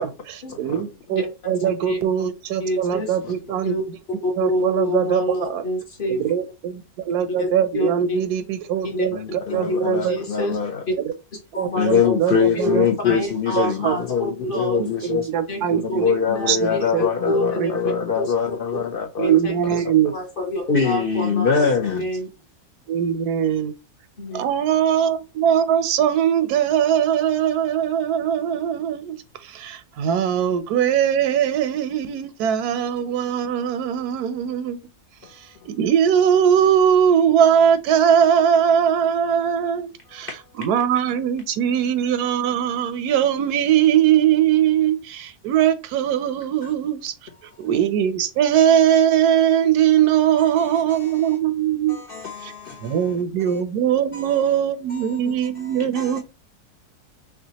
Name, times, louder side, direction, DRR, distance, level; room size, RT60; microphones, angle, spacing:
voice 1, 0.6-3.8 4.4-5.6 6.1-9.2 9.5-10.2 11.0-11.1 11.6-13.2 13.6-14.0 14.8-16.1 16.5-17.0 17.6-17.7 19.2-20.1 22.9-23.7 24.3-34.8 35.3-40.3 40.6-47.1 47.6-52.0 52.4-52.5 52.8-56.2, right 9 dB, 80° right, 1.1 m, -21 dB
voice 2, 1.1-1.5 1.8-2.3 2.6-3.2 3.6-3.8 4.2-6.3 7.4-7.5 7.7-8.2 8.8-9.1 9.5-10.6 10.9-11.0 11.5-12.1 12.5-15.1 15.5-18.3 18.7-18.8 19.2-19.8 20.1-21.6 21.9-22.3 24.2-24.4, equal, 40° left, 1.1 m, -27 dB
voice 3, 9.1-10.8 11.8-15.3 15.7-19.4 20.7-22.1 35.2-35.3 46.6-46.7 50.6-51.4 51.9-53.1 53.5-53.6 54.1-54.4 54.9-55.2 55.6-56.2, left 6 dB, 65° left, 0.5 m, -24 dB
5.7 x 2.4 x 2.8 m
omnidirectional pair, 1.6 m